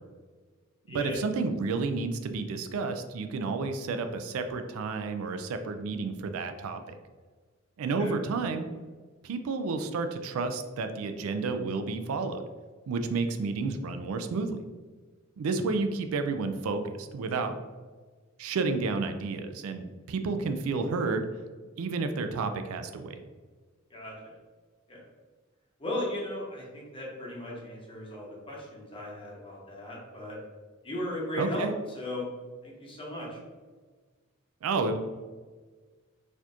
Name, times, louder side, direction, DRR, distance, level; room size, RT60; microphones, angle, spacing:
voice 1, 0.9-6.8 7.8-8.7 9.2-12.4 12.9-14.6 15.4-17.6 18.4-21.2 21.8-23.2 31.4-31.7 34.6-35.0, right 4 dB, 80° right, 7 dB, 0.4 m, -31 dB
voice 2, 23.9-24.4 24.9-25.0 25.8-30.4 30.8-31.7 31.9-32.3 32.6-33.4, left 1 dB, 25° left, -4 dB, 0.9 m, -37 dB
4.2 x 2.8 x 2.4 m, 1.4 s
head